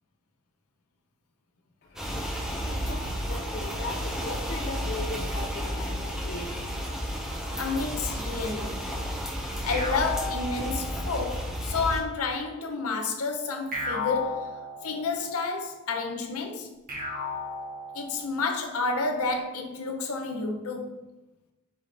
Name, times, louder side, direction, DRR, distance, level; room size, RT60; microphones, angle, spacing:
voice 1, 1.8-7.3, left 2 dB, 50° left, 0.5 m, -39 dB
sound 1, 2.0-12.0, equal, ahead, 0.6 m, -32 dB
voice 2, 7.6-8.8 9.6-14.5 14.8-16.7 17.9-21.0, left 4 dB, 85° left, 0.7 m, -30 dB
sound 2, 9.7-11.3 13.7-15.3 16.9-18.4, left 3 dB, 40° right, 1.2 m, -34 dB
4.2 x 3.3 x 3.8 m
head